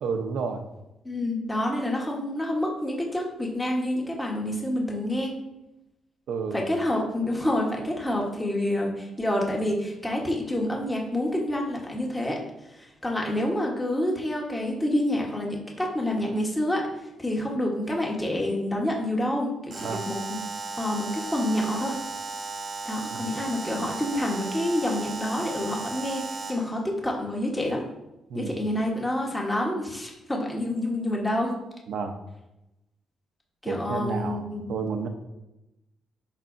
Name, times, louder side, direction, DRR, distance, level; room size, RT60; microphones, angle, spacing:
voice 1, 0.0-0.6 6.3-6.6 19.8-20.0 23.1-23.2 28.3-28.5 31.9-32.1 33.7-35.1, right 5 dB, 75° right, 5 dB, 0.9 m, -30 dB
voice 2, 1.0-5.3 6.5-20.2 20.8-22.0 22.8-27.8 28.3-31.6 33.6-34.8, left 1 dB, 10° left, -1 dB, 1.3 m, -28 dB
Alarm, 19.7-26.7, right 4 dB, 40° right, 1.0 m, -35 dB
11.5 x 4.1 x 2.7 m, 0.94 s
cardioid pair, 105°, 0 cm